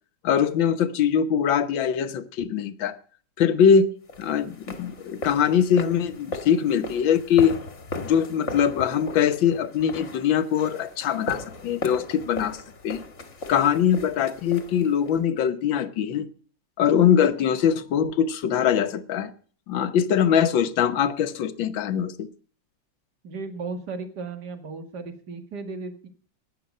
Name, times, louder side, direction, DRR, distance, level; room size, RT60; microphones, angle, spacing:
voice 1, 0.2-3.0 3.4-3.9 4.2-7.6 8.0-13.0 13.5-16.3 16.8-19.3 19.7-22.3, left 8 dB, 85° left, 1.8 m, -22 dB
sound 1, 4.1-15.2, left 2 dB, 40° left, 2.0 m, -37 dB
voice 2, 23.2-26.1, right 4 dB, 60° right, 2.5 m, -35 dB
17.5 x 11.0 x 5.4 m
omnidirectional pair, 2.0 m